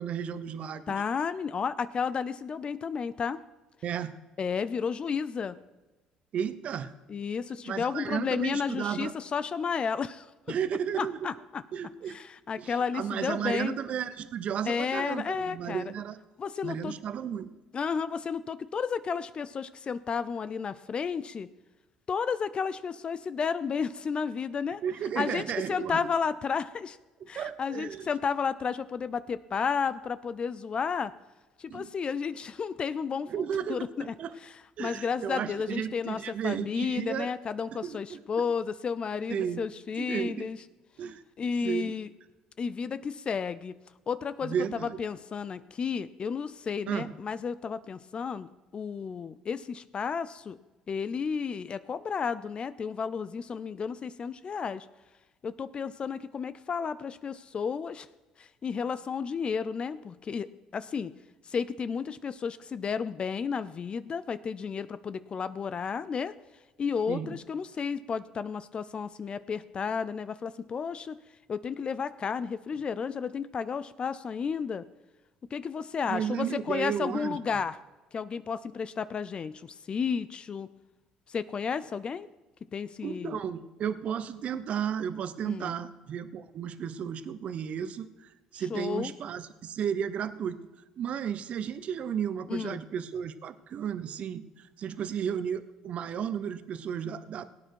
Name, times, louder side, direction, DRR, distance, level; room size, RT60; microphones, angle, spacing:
voice 1, 0.0-0.9 3.8-4.1 6.3-6.9 7.6-9.1 10.5-11.3 11.7-12.2 12.6-16.2 16.6-17.5 24.8-26.0 27.3-28.1 31.7-31.9 33.3-34.3 34.8-37.3 37.8-38.2 39.3-39.6 40.0-40.5 41.0-41.2 41.6-41.9 44.4-45.0 46.9-47.1 67.1-67.4 76.1-77.4 83.0-90.6 91.0-97.5, right 8 dB, 55° right, 13 dB, 0.9 m, -33 dB
voice 2, 0.9-3.4 4.4-5.6 7.1-10.3 11.0-11.6 12.1-13.8 14.7-15.9 16.4-17.0 17.7-21.5 22.1-24.8 25.2-27.0 27.3-31.1 31.6-33.4 33.7-34.1 34.8-40.6 41.4-42.1 42.6-43.7 44.1-50.6 50.9-54.9 55.4-58.1 58.4-61.1 61.5-66.3 66.8-71.2 71.5-74.9 75.5-77.8 78.1-80.7 81.3-82.3 82.7-83.4 85.4-85.8 88.7-89.1 92.5-92.8, left 6 dB, 40° left, 15 dB, 0.6 m, -32 dB
18.0 x 8.9 x 4.7 m, 1.1 s
hypercardioid pair, 65°, 3 cm